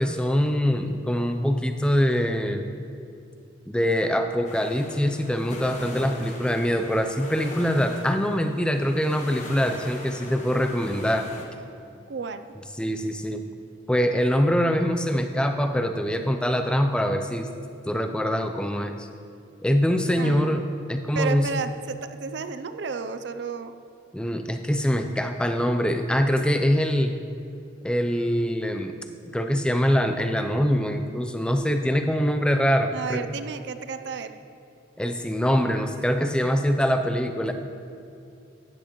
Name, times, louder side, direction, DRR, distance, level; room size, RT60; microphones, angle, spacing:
voice 1, 0.0-2.7 3.7-11.2 12.8-13.4 13.9-17.5 17.9-19.1 19.6-21.5 24.1-27.1 27.8-29.0 29.2-33.2 35.0-37.5, equal, 5° left, 6 dB, 0.4 m, -24 dB
sound 1, 4.5-11.5, left 1 dB, 35° left, 1.2 m, -40 dB
voice 2, 12.1-12.5 20.2-20.6 21.1-23.7 32.9-34.3, right 5 dB, 60° right, 9 dB, 0.5 m, -32 dB
13.5 x 10.0 x 3.0 m, 2.6 s
head